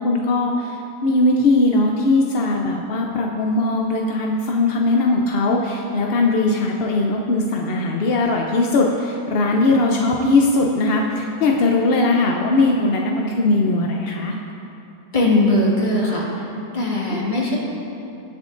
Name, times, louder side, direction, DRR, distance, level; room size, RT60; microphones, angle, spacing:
voice 1, 0.0-14.4 17.1-17.2, left 2 dB, 60° left, 0 dB, 0.6 m, -19 dB
voice 2, 15.1-16.5 16.7-17.6, left 1 dB, 30° left, -5 dB, 1.9 m, -19 dB
20.0 x 7.3 x 2.5 m, 2.8 s
omnidirectional pair, 1.7 m